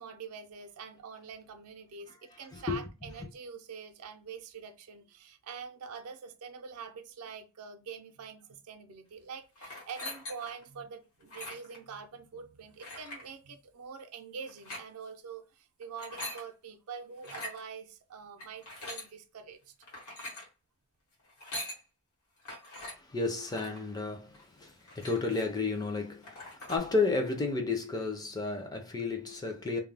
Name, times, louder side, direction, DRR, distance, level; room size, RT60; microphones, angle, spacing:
voice 1, 0.0-19.7, right 6 dB, 80° right, 0.5 m, -45 dB
voice 2, 2.5-2.9 22.9-29.8, left 3 dB, 15° left, 0.4 m, -32 dB
sound 1, 9.6-10.6 11.2-11.8 12.8-13.3 14.5-14.9 15.8-16.4 17.2-17.6 18.4-19.1 19.8-20.5 21.3-21.8 22.5-23.0 23.5-23.8 24.3-24.4 24.7-25.5 25.9-26.0 26.2-26.8, left 1 dB, 80° left, 1.0 m, -42 dB
2.2 x 2.0 x 3.3 m
head